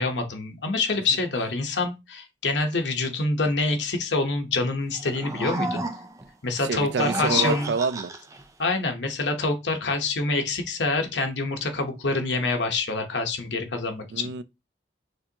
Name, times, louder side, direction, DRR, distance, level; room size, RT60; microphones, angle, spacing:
voice 1, 0.0-5.9 6.4-7.7 8.6-14.3, left 3 dB, 90° left, 1.0 m, -26 dB
sound 1, 4.9-6.3 6.8-8.4, right 2 dB, 20° right, 0.5 m, -31 dB
voice 2, 6.6-8.1 14.1-14.4, right 5 dB, 80° right, 0.4 m, -27 dB
6.5 x 2.6 x 2.8 m
head